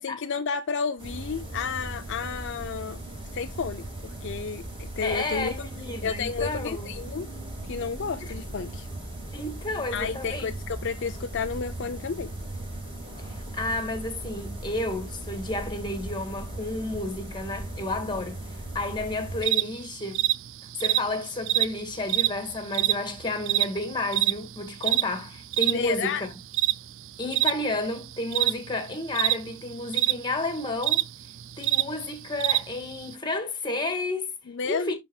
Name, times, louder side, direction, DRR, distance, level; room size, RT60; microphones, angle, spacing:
voice 1, 0.0-3.0 3.3-5.7 6.0-7.3 7.6-8.9 9.9-12.3 25.7-26.2 34.5-34.9, left 5 dB, 55° left, 0.5 m, -31 dB
sound 1, 1.0-19.4, right 1 dB, 25° right, 5.3 m, -38 dB
voice 2, 5.0-6.9 8.2-8.3 9.3-10.5 13.2-18.4 18.7-20.2 20.8-26.4 27.2-31.1 31.6-34.3 34.6-34.9, left 2 dB, 20° left, 1.8 m, -31 dB
sound 2, 19.4-33.1, right 14 dB, 55° right, 0.3 m, -26 dB
11.5 x 4.0 x 2.3 m
head